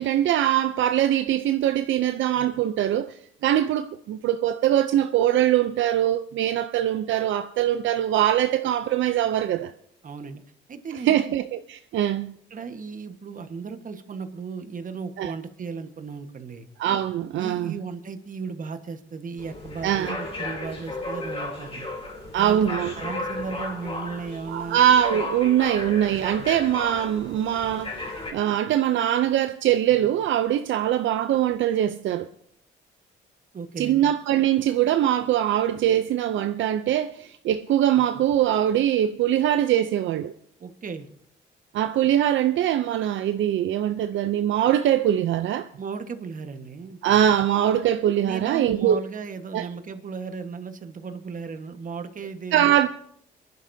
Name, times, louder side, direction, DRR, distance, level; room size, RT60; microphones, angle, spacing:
voice 1, 0.0-9.7 11.1-12.3 15.2-15.3 16.8-17.7 19.8-20.2 22.3-22.9 24.5-28.0 28.3-32.3 33.8-40.3 41.7-45.7 47.0-49.0 49.5-49.6 52.5-52.9, right 11 dB, 75° right, 0.6 m, -22 dB
voice 2, 10.0-10.4 10.7-11.3 12.5-16.7 17.4-21.9 22.3-22.6 23.0-24.8 33.5-34.1 40.6-41.1 45.8-47.0 48.2-52.7, right 5 dB, 40° right, 1.4 m, -36 dB
sound 1, 19.4-28.3, left 2 dB, 30° left, 3.2 m, -34 dB
27.0 x 11.0 x 2.7 m
cardioid pair, 90°, 20 cm